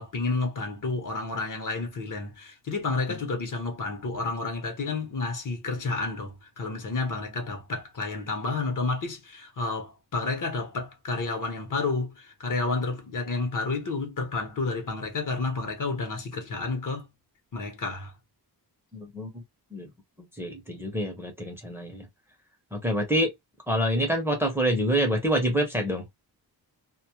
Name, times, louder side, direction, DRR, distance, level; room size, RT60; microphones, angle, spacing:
voice 1, 0.0-17.1 17.5-18.1, left 3 dB, 55° left, 0.8 m, -30 dB
voice 2, 18.9-19.4 19.7-19.9 20.4-22.1 22.7-23.3 23.7-26.0, equal, 5° right, 0.6 m, -26 dB
2.2 x 2.0 x 2.8 m
wide cardioid pair, 165°, 38 cm